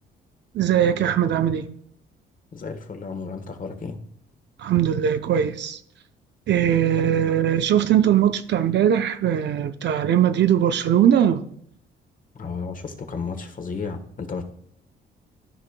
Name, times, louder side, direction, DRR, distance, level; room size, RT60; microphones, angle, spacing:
voice 1, 0.5-1.7 4.6-5.8 6.5-11.4, right 10 dB, 60° right, 0.6 m, -20 dB
voice 2, 2.5-4.0 6.7-7.1 7.8-7.9 12.3-14.4, left 5 dB, 45° left, 1.3 m, -33 dB
13.5 x 5.0 x 2.2 m
cardioid pair, 90°, 20 cm